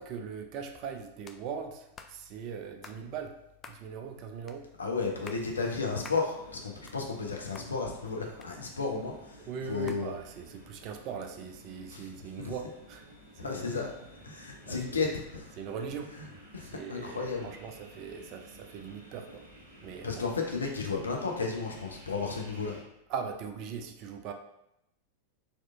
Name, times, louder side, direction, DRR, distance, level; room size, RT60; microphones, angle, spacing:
voice 1, 0.0-3.4 3.7-4.7 9.4-13.8 14.6-15.0 15.6-16.1 16.6-19.5 19.8-20.2 23.1-24.3, right 6 dB, 40° right, 4 dB, 0.5 m, -40 dB
sound 1, 1.2-1.4 2.0-2.1 2.8-3.0 3.6-3.8 4.5-4.6 5.1-5.5 6.0-6.2 6.6-7.3 7.5-7.7 8.4-9.0 9.9-10.1, left 5 dB, 25° left, 0.3 m, -48 dB
voice 2, 4.8-10.2 11.9-12.0 12.4-12.5 13.4-13.9 14.2-15.5 16.2-16.3 16.5-17.5 20.0-22.8, left 4 dB, 75° left, 1 dB, 0.7 m, -33 dB
sound 2, 6.3-22.8, right 1 dB, 60° right, 1.1 m, -54 dB
4.3 x 3.0 x 2.5 m, 0.82 s
figure-of-eight pair, 90°, 0 cm